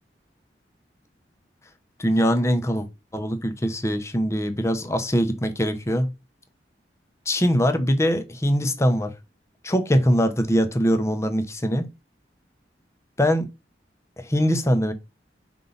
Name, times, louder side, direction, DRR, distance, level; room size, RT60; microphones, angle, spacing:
voice 1, 2.0-2.9 3.1-6.1 7.3-9.1 9.6-11.9 13.2-13.5 14.2-14.9, equal, 15° left, 0.8 m, -22 dB
5.5 x 4.5 x 3.9 m
head